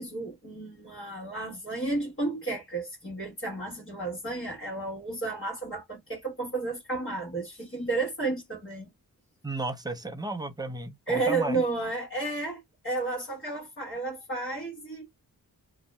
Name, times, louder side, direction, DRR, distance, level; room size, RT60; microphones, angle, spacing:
voice 1, 0.0-8.9 11.1-15.0, right 3 dB, 35° left, 1.2 m, -32 dB
voice 2, 9.4-11.6, right 2 dB, 10° right, 0.4 m, -34 dB
2.6 x 2.0 x 3.2 m
wide cardioid pair, 155°, 36 cm